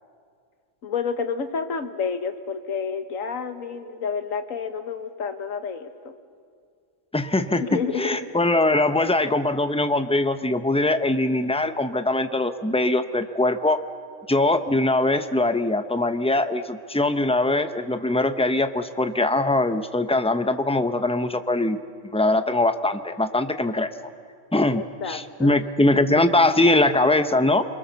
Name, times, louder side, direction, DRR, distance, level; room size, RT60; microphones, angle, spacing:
voice 1, 0.8-6.1 7.6-8.2 25.0-25.6, left 5 dB, 70° left, 9 dB, 1.6 m, -29 dB
voice 2, 7.1-7.6 8.0-13.8 14.3-21.8 22.1-23.9 24.5-27.7, left 2 dB, 10° left, 9 dB, 0.4 m, -22 dB
30.0 x 22.5 x 6.9 m, 2.3 s
omnidirectional pair, 1.5 m